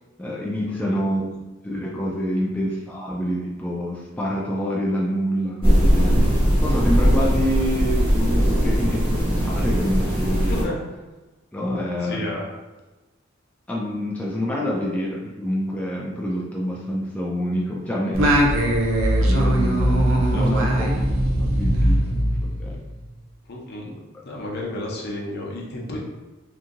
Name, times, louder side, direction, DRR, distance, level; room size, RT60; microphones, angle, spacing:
voice 1, 0.2-1.2 1.6-6.2 6.6-10.7 11.5-12.3 13.7-18.4 19.2-21.0 21.4-22.8 23.8-23.9, equal, 5° left, -4 dB, 0.3 m, -27 dB
sound 1, 5.6-10.6, equal, 25° right, 1.0 m, -19 dB
voice 2, 10.5-10.8 12.0-12.5 20.3-20.4 23.5-23.9 24.2-26.0, left 1 dB, 55° left, -1 dB, 0.6 m, -31 dB
Singing, 18.1-22.9, right 1 dB, 90° right, 0.5 m, -20 dB
2.8 x 2.6 x 2.5 m, 1.1 s
head